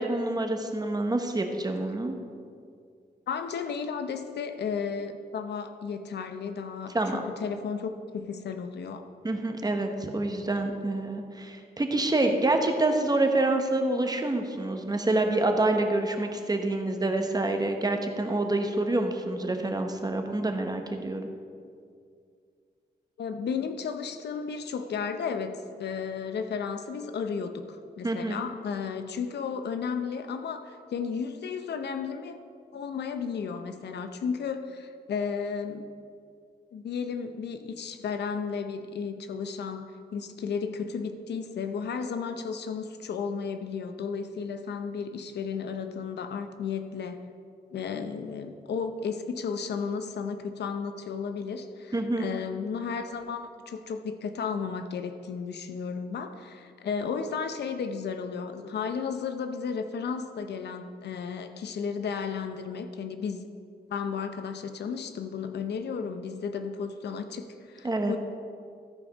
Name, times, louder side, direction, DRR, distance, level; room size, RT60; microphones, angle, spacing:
voice 1, 0.0-2.2 6.9-7.2 9.2-21.3 28.0-28.4 51.9-52.3 67.8-68.1, right 2 dB, 25° right, 5 dB, 1.0 m, -27 dB
voice 2, 3.3-9.0 23.2-32.4 32.7-35.8 36.7-47.2 47.7-63.4 63.9-68.2, left 6 dB, 85° left, 8 dB, 0.7 m, -33 dB
13.5 x 5.0 x 5.3 m, 2.3 s
cardioid pair, 80°, 17 cm